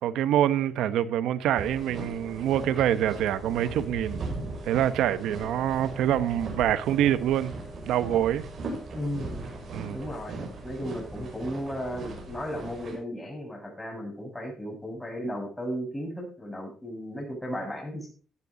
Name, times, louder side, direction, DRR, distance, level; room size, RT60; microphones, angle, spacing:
voice 1, 0.0-4.2 4.6-7.5 7.9-8.5 9.7-10.0, right 11 dB, 85° right, 0.9 m, -25 dB
sound 1, 1.5-13.0, right 2 dB, 55° right, 5.9 m, -38 dB
voice 2, 8.9-9.4 9.9-18.1, equal, 10° left, 7.4 m, -35 dB
15.5 x 10.0 x 3.9 m
cardioid pair, 90°, 0 cm